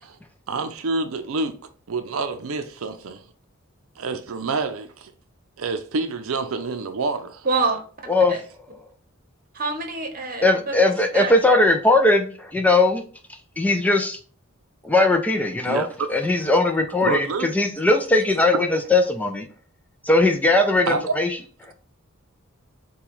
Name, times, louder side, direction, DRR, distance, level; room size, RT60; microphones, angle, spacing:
voice 1, 0.5-1.6 1.9-3.2 4.0-5.1 5.6-7.5 15.7-16.2 16.5-16.6 17.0-17.5 20.9-21.2, right 3 dB, 70° right, 0.5 m, -27 dB
voice 2, 7.4-7.8 8.3-8.4 9.5-10.8 11.1-11.3, right 3 dB, 45° right, 1.0 m, -26 dB
voice 3, 10.4-13.0 13.6-14.2 14.8-15.8 16.1-19.5 20.0-21.4 21.7-21.8, left 2 dB, 5° left, 0.4 m, -19 dB
6.8 x 2.3 x 3.1 m
head